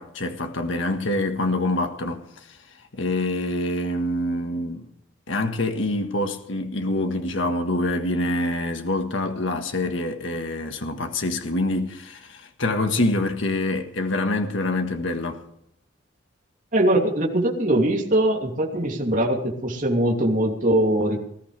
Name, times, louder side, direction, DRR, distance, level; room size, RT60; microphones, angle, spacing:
voice 1, 0.0-2.2 2.5-2.6 2.9-4.9 5.3-15.4, left 1 dB, 80° left, 1.6 m, -26 dB
voice 2, 16.7-21.2, right 1 dB, 40° right, 2.9 m, -21 dB
20.5 x 14.0 x 3.4 m
head